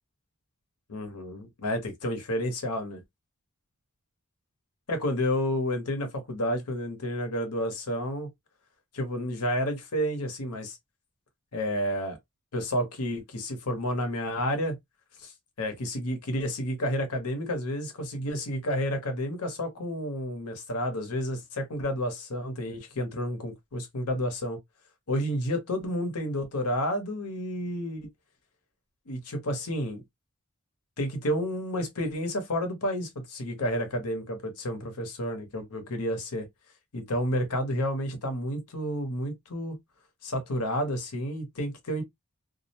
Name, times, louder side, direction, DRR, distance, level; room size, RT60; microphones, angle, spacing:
voice 1, 0.9-3.0 4.9-8.3 8.9-10.8 11.5-12.2 12.5-14.8 15.2-24.6 25.1-28.1 29.1-30.0 31.0-36.5 36.9-39.8 40.2-42.0, equal, 90° left, 0.9 m, -30 dB
2.4 x 2.0 x 2.7 m
head